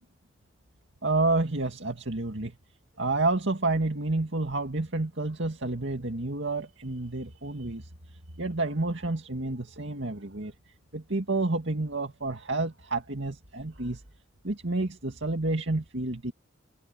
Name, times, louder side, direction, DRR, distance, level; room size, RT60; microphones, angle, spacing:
voice 1, 1.0-2.6 3.0-10.5 10.9-14.0 14.4-16.3, right 2 dB, 65° right, 2.3 m, -29 dB
head